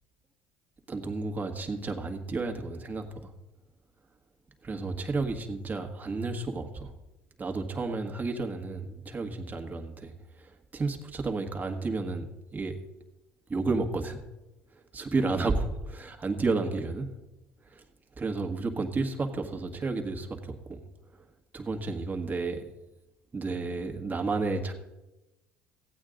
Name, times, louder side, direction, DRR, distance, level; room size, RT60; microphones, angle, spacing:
voice 1, 0.9-3.3 4.6-6.9 7.4-12.8 13.5-14.2 14.9-17.1 17.6-17.8 18.2-20.8 21.1-21.2 21.5-22.6 23.3-24.7, right 3 dB, 25° right, 4 dB, 1.5 m, -32 dB
15.0 x 8.8 x 3.8 m, 1.0 s
hypercardioid pair, 70°, 6 cm